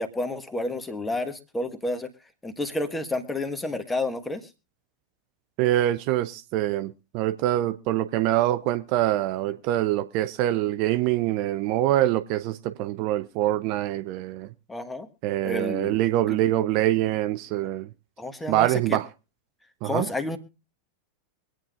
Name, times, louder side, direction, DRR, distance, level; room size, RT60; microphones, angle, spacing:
voice 1, 0.0-2.1 2.4-4.5 14.7-15.1 15.4-16.0 16.3-16.4 18.2-19.0 19.8-20.4, left 2 dB, 10° left, 1.4 m, -30 dB
voice 2, 5.6-14.5 15.2-17.9 18.5-19.1 19.8-20.1, right 14 dB, 45° right, 0.6 m, -24 dB
24.0 x 9.0 x 2.5 m
figure-of-eight pair, 90°, 0 cm